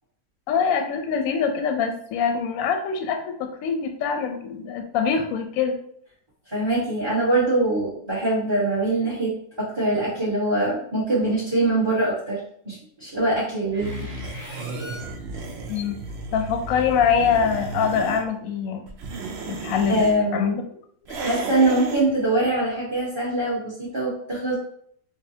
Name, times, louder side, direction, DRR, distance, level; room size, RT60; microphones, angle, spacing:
voice 1, 0.5-5.8 15.7-16.0 16.3-18.8 19.5-20.0 20.3-20.6, left 6 dB, 70° left, 5 dB, 0.9 m, -24 dB
voice 2, 6.5-12.4 12.6-15.1 19.9-20.5 21.2-24.5, right 2 dB, 20° right, -10 dB, 0.9 m, -23 dB
sound 1, 13.8-18.2 18.9-20.2 21.1-22.1, right 3 dB, 90° right, 0.5 m, -33 dB
4.8 x 2.2 x 2.7 m, 0.64 s
omnidirectional pair, 1.8 m